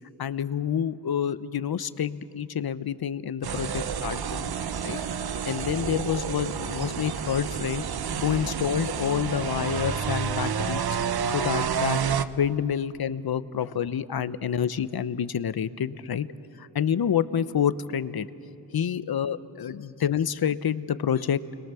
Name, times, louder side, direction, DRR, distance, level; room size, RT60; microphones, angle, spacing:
voice 1, 0.2-4.5 4.8-5.0 5.5-7.8 8.2-11.0 11.3-16.3 16.6-18.3 18.7-21.4, left 8 dB, 55° left, 14 dB, 1.0 m, -28 dB
sound 1, 3.4-12.2, right 7 dB, 55° right, 1.0 m, -29 dB
29.5 x 22.0 x 7.1 m, 2.8 s
cardioid pair, 60°, 44 cm